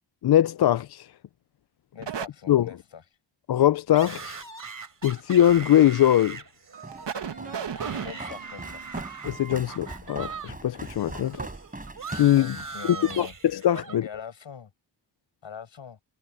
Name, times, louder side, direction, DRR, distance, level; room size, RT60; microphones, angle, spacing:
voice 1, 0.2-1.1 2.5-2.7 3.5-4.4 5.0-6.4 9.2-11.4 12.1-12.5 13.2-13.3 13.5-14.0, left 11 dB, 60° left, 0.5 m, -21 dB
voice 2, 1.9-3.0 7.8-8.9 12.4-13.4 13.9-14.7 15.4-16.0, left 7 dB, 75° left, 5.7 m, -42 dB
Record Scratches, 2.0-2.3 5.4-5.6 6.1-6.2 6.7-9.0 10.8-10.9 11.3-11.5 11.9-12.0, right 7 dB, 65° right, 1.8 m, -35 dB
sound 1, 3.9-10.5 10.8-14.0, right 5 dB, 45° right, 3.7 m, -40 dB
Walk footsteps, 6.8-13.3, right 2 dB, 20° right, 4.2 m, -41 dB
wide cardioid pair, 120°, 45 cm